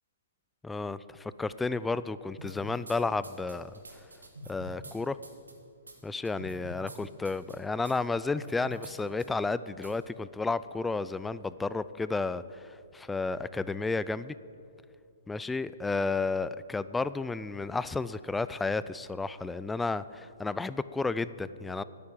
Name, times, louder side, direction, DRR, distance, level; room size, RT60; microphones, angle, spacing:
voice 1, 0.6-3.7 4.5-5.2 6.0-14.3 15.3-21.8, left 3 dB, 5° left, 16 dB, 0.3 m, -32 dB
sound 1, 2.4-3.0 3.2-4.9 5.2-5.5 5.9-6.0 6.2-7.0 7.2-7.5 7.8-7.9 8.3-8.9 9.2-9.3 9.8-9.9, equal, 90° right, 2.1 m, -45 dB
10.5 x 8.5 x 9.2 m, 2.3 s
hypercardioid pair, 135°, 0 cm